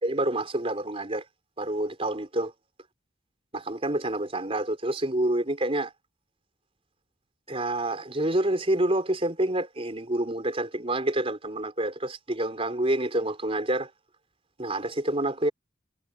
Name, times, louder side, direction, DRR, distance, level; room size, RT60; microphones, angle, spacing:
voice 1, 0.0-1.2 1.6-2.5 3.5-5.9 7.5-13.9 14.6-15.5, right 1 dB, 30° right, 4.0 m, -28 dB
head